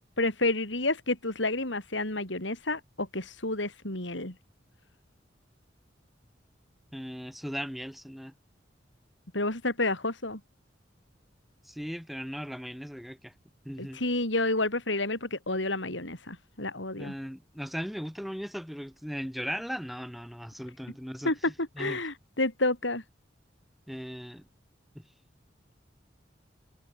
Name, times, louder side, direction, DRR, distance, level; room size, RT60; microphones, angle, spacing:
voice 1, 0.2-4.3 9.3-10.4 13.8-17.1 21.2-23.0, left 2 dB, 80° left, 6.3 m, -30 dB
voice 2, 6.9-8.3 11.7-13.3 13.6-14.0 16.9-22.0 23.9-24.4 24.9-25.0, equal, ahead, 7.9 m, -38 dB
head